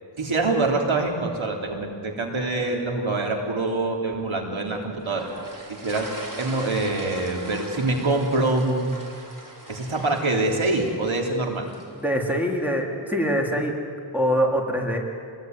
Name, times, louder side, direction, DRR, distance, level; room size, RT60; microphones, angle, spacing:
voice 1, 0.2-5.3 5.7-6.1 6.4-8.9 9.7-11.7, right 2 dB, 85° right, 1 dB, 3.5 m, -25 dB
sound 1, 5.0-12.3, right 1 dB, 40° right, 4.2 m, -40 dB
voice 2, 11.9-13.7 14.1-15.0, equal, 5° right, 0 dB, 3.8 m, -24 dB
27.5 x 20.5 x 9.5 m, 2.4 s
wide cardioid pair, 80°, 46 cm